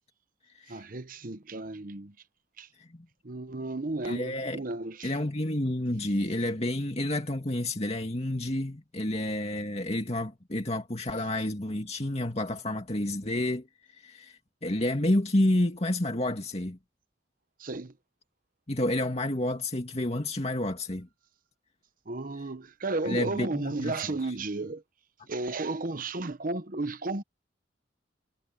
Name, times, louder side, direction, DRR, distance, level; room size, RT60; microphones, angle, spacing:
voice 1, 0.7-2.1 2.6-2.7 3.2-5.1 17.6-17.9 22.1-24.8 25.3-27.2, right 2 dB, 45° right, 1.0 m, -33 dB
voice 2, 4.0-4.6 5.0-16.8 18.7-21.1 23.0-24.3, left 1 dB, 35° left, 2.3 m, -30 dB
head